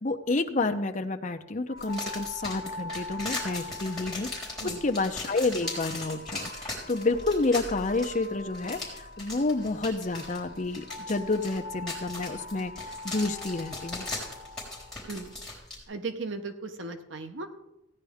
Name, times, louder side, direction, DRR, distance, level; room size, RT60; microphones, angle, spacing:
voice 1, 0.0-4.3 4.8-14.1, left 3 dB, 40° left, 6 dB, 0.7 m, -29 dB
sound 1, 1.7-15.6, left 2 dB, 60° left, 1.0 m, -43 dB
sound 2, 1.8-15.8, left 2 dB, 5° left, 3.8 m, -39 dB
voice 2, 15.9-17.5, right 3 dB, 65° right, 7 dB, 0.9 m, -36 dB
16.5 x 10.0 x 3.6 m, 0.92 s
head